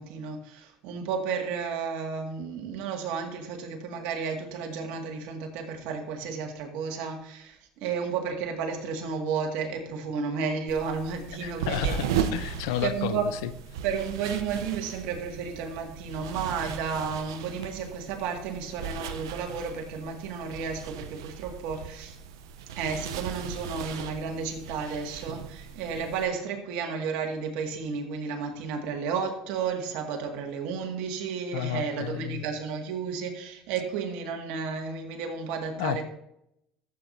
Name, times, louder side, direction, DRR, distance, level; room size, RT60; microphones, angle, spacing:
voice 1, 0.0-12.0 12.8-13.3 13.8-22.2 22.8-36.0, right 6 dB, 75° right, 3 dB, 2.0 m, -32 dB
sound 1, 10.7-26.3, right 8 dB, 90° right, 0.7 m, -37 dB
voice 2, 11.4-13.5 31.5-32.4 35.8-36.0, left 12 dB, 85° left, 14 dB, 0.6 m, -32 dB
14.0 x 8.3 x 2.7 m, 0.80 s
supercardioid pair, 85°, 2 cm